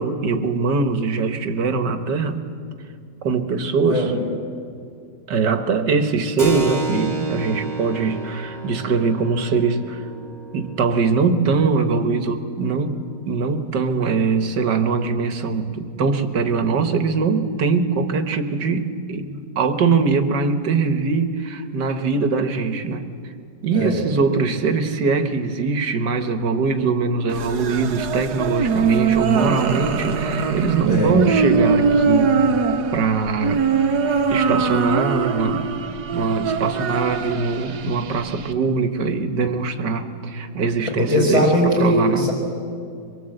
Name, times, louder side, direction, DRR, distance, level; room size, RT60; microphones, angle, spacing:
voice 1, 0.0-2.4 3.2-4.1 5.3-10.1 10.5-23.0 23.6-32.4 32.9-33.6 34.3-35.7 36.1-41.5 41.8-42.3, right 4 dB, 85° right, 8 dB, 2.0 m, -22 dB
Keyboard (musical), 6.4-14.6, right 2 dB, 25° right, 2.3 m, -32 dB
sound 1, 27.3-38.5, right 5 dB, 70° right, 1.7 m, -22 dB
voice 2, 30.9-31.2 40.8-42.3, left 1 dB, 15° left, -4 dB, 4.8 m, -20 dB
24.5 x 23.0 x 7.9 m, 2.3 s
omnidirectional pair, 1.8 m